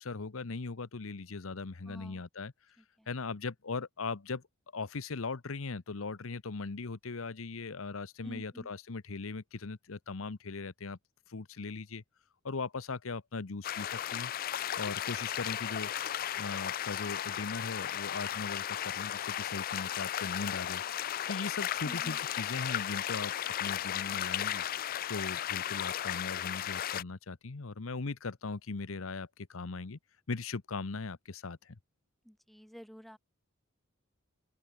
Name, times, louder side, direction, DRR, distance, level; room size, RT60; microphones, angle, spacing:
voice 1, 0.0-2.8 3.1-4.4 4.7-11.0 11.3-12.0 12.4-14.3 14.8-15.9 16.4-20.8 21.1-23.3 23.6-24.6 25.1-30.0 30.3-31.8, left 4 dB, 75° left, 0.9 m, -39 dB
voice 2, 1.8-2.2 2.8-3.1 8.2-8.7 21.8-22.2 32.3-33.2, equal, ahead, 3.5 m, -49 dB
sound 1, 13.6-27.0, left 11 dB, 45° left, 0.4 m, -35 dB
open air
head